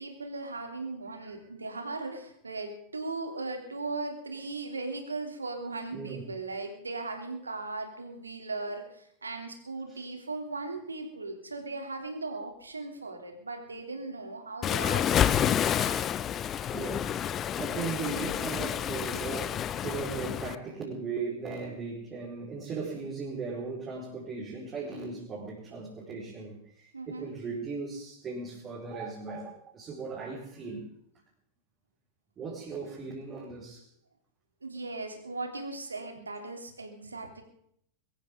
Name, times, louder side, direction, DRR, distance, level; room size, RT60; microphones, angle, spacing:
voice 1, 0.0-16.0 26.9-27.3 34.6-37.4, right 3 dB, 80° right, 5 dB, 3.3 m, -38 dB
voice 2, 5.9-6.2 9.9-10.0 16.7-17.2 17.6-30.9 32.4-33.8, right 4 dB, 25° right, -4 dB, 5.1 m, -38 dB
Waves surf, 14.6-20.6, left 9 dB, 30° left, 0.7 m, -29 dB
22.5 x 14.5 x 3.9 m, 0.70 s
figure-of-eight pair, 90°, 0 cm